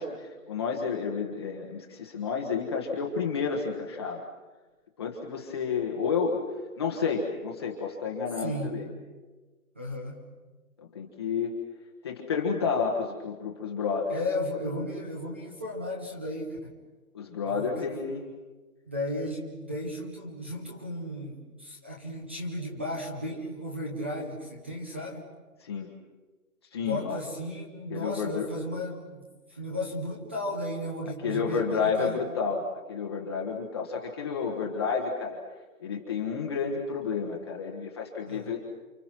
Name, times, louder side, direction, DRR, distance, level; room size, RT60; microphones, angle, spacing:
voice 1, 0.0-4.2 5.0-6.4 6.8-8.9 10.8-11.5 12.0-14.1 17.1-18.3 25.6-25.9 26.7-27.2 27.9-28.5 31.2-35.4 35.8-38.6, left 5 dB, 20° left, -1 dB, 1.3 m, -30 dB
voice 2, 8.4-8.8 9.7-10.2 14.1-16.7 17.5-17.9 18.9-25.3 26.8-32.2 38.3-38.5, left 1 dB, 10° right, -1 dB, 0.8 m, -35 dB
29.0 x 26.5 x 6.0 m, 1.3 s
hypercardioid pair, 170°, 44 cm